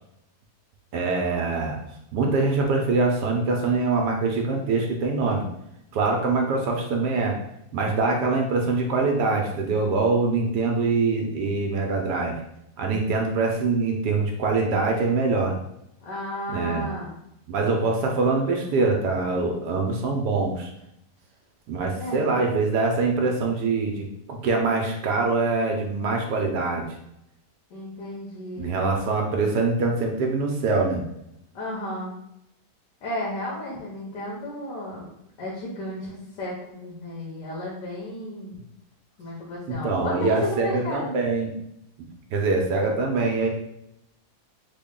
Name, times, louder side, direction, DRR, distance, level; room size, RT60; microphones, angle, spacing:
voice 1, 0.9-1.8 2.1-5.5 5.9-7.4 7.7-12.3 12.8-15.5 16.5-16.9 17.5-20.7 21.7-26.8 28.6-31.0 39.7-41.5 42.3-43.5, right 3 dB, 80° right, 1 dB, 1.2 m, -24 dB
voice 2, 16.0-17.2 21.9-22.4 27.7-28.7 31.5-32.1 33.0-35.1 35.4-38.6 39.2-41.2, left 1 dB, 85° left, -5 dB, 1.5 m, -33 dB
3.6 x 2.1 x 3.6 m, 0.79 s
omnidirectional pair, 1.8 m